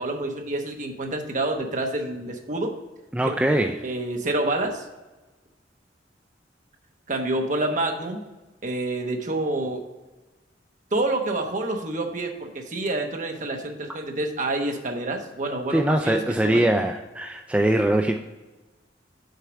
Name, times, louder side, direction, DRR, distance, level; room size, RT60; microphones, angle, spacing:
voice 1, 0.0-2.7 3.4-3.5 3.8-4.9 7.1-8.2 8.6-9.8 10.9-16.6, right 2 dB, 45° right, 3 dB, 1.0 m, -28 dB
voice 2, 3.1-3.8 15.7-18.2, right 1 dB, 5° right, 4 dB, 0.3 m, -22 dB
6.6 x 4.6 x 6.2 m, 1.1 s
head